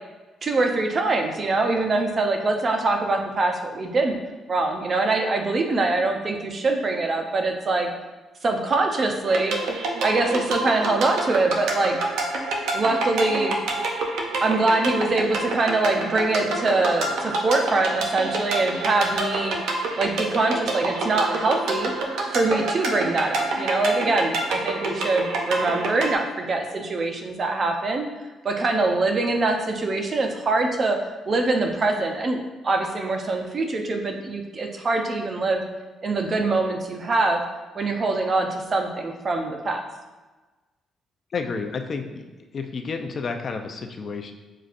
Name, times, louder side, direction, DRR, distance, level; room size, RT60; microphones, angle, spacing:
voice 1, 0.4-4.2 4.5-7.9 8.4-9.6 10.0-12.0 12.7-13.6 14.4-19.6 20.0-21.9 22.3-28.1 28.4-31.0 31.3-32.4 32.6-35.6 36.0-37.4 37.7-39.9, right 3 dB, 40° right, 4 dB, 0.6 m, -23 dB
sound 1, 9.3-26.1, right 2 dB, 80° right, 0.6 m, -27 dB
voice 2, 41.3-44.3, left 4 dB, 50° left, 5 dB, 0.4 m, -31 dB
6.4 x 2.5 x 2.5 m, 1.2 s
cardioid pair, 90°, 0 cm